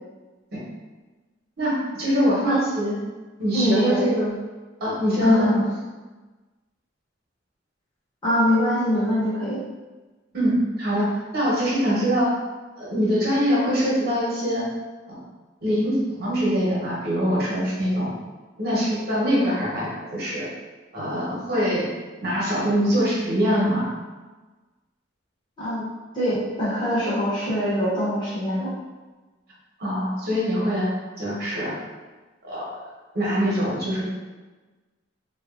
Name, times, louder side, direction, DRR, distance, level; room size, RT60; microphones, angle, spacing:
voice 1, 1.6-2.9 3.4-4.3 4.8-5.5 10.3-12.3 12.8-14.6 15.1-15.2 15.6-18.1 18.6-20.5 20.9-21.9 22.2-23.9 29.8-30.9 31.2-31.8 32.4-32.8 33.1-34.0, equal, 55° right, -7 dB, 1.1 m, -23 dB
voice 2, 3.5-4.0 5.2-5.7 8.2-9.6 25.6-25.9 26.1-28.7, equal, 25° left, -11 dB, 0.9 m, -23 dB
3.0 x 2.5 x 2.5 m, 1.3 s
head